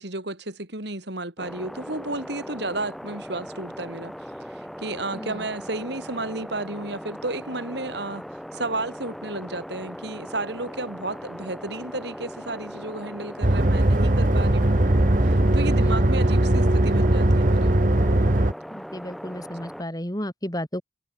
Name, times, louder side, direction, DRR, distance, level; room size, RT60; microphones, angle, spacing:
voice 1, 0.0-4.1 4.5-14.7 15.2-17.8, right 2 dB, 55° right, 3.9 m, -32 dB
sound 1, 1.4-19.8, equal, ahead, 7.5 m, -39 dB
voice 2, 5.1-5.5 15.8-16.0 18.7-20.8, equal, 20° left, 3.4 m, -33 dB
sound 2, 13.4-18.5, right 1 dB, 40° right, 1.4 m, -19 dB
head